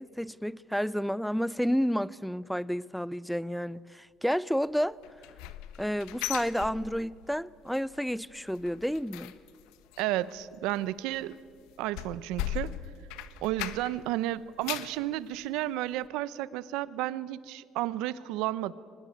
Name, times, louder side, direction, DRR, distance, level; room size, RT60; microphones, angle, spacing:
voice 1, 0.0-5.0 5.8-9.3, equal, ahead, 0.5 m, -30 dB
sound 1, 5.0-7.4 7.7-8.0 8.3-14.1 14.4-15.0 15.5-15.6 16.0-16.1, left 12 dB, 90° left, 1.1 m, -39 dB
voice 2, 10.0-11.4 11.8-12.8 13.4-18.7, right 15 dB, 85° right, 0.8 m, -32 dB
24.0 x 19.5 x 9.4 m
cardioid pair, 100°, 0 cm